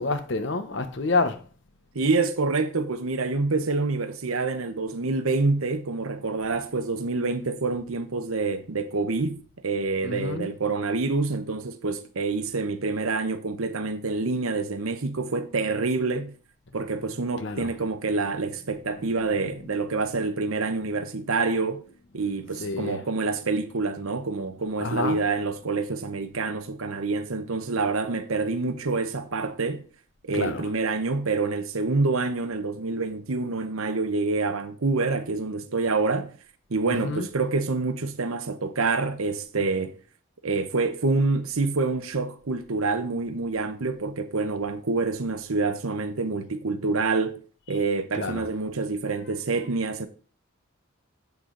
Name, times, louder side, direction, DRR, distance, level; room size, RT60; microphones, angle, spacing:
voice 1, 0.0-1.4 10.0-10.5 17.4-17.7 22.6-23.0 24.8-25.2 30.3-30.7 36.9-37.3 48.1-48.5, left 3 dB, 60° left, 0.9 m, -28 dB
voice 2, 1.9-16.4 16.7-21.8 22.1-29.8 30.2-36.3 36.7-40.0 40.4-47.4 47.7-50.1, right 3 dB, 85° right, 0.9 m, -27 dB
8.2 x 6.7 x 3.9 m
head